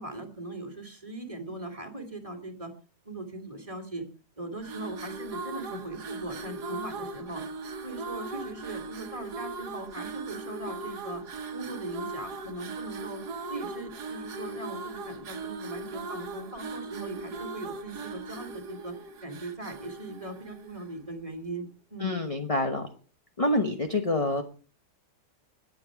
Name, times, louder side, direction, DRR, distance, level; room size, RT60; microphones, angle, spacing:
voice 1, 0.0-2.7 3.0-4.1 4.4-7.4 7.8-11.2 11.5-13.2 13.5-18.9 19.2-22.1, right 2 dB, 20° right, 3 dB, 2.2 m, -39 dB
sound 1, 4.6-21.0, right 3 dB, 70° right, 1.8 m, -39 dB
voice 2, 22.0-22.9 23.4-24.4, left 2 dB, 25° left, 5 dB, 1.0 m, -27 dB
20.5 x 7.8 x 4.8 m, 0.38 s
omnidirectional pair, 1.8 m